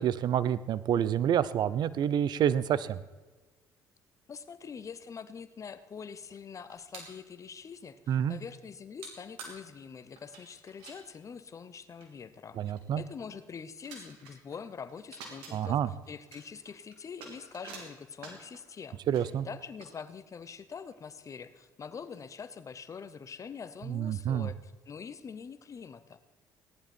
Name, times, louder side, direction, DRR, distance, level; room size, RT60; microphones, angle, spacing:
voice 1, 0.0-3.0 8.1-8.4 12.6-13.0 15.5-15.9 19.1-19.5 23.9-24.5, right 9 dB, 60° right, 17 dB, 0.7 m, -28 dB
voice 2, 4.3-12.6 13.0-19.0 19.4-26.2, left 6 dB, 40° left, 13 dB, 1.0 m, -44 dB
sound 1, 6.7-7.2 9.0-9.1 9.4-9.5 10.2-11.0 11.7-11.8 12.0-12.1 12.5-12.8 13.4-13.5 13.8-14.6 14.9-15.5 16.0-18.6 19.1-19.2 19.8-20.5 20.9-21.0 21.6-21.7 22.0-22.4, right 4 dB, 90° right, 3.1 m, -48 dB
17.0 x 11.0 x 4.4 m, 1.3 s
supercardioid pair, 75°, 8 cm